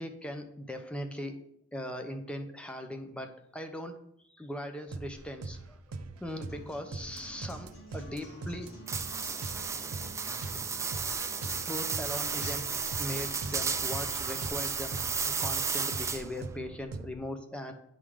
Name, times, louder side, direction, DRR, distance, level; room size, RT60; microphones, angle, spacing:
voice 1, 0.0-1.4 1.7-4.0 4.3-8.7 10.5-10.7 11.7-12.6 13.0-15.0 15.4-17.7, left 1 dB, 5° left, 5 dB, 0.8 m, -39 dB
sound 1, 4.9-17.2, right 3 dB, 85° right, 0.6 m, -42 dB
Acoustic guitar, 6.5-14.5, left 1 dB, 65° left, 2.6 m, -50 dB
sound 2, 8.9-16.4, right 6 dB, 15° right, 0.3 m, -33 dB
9.7 x 3.7 x 4.9 m, 0.73 s
head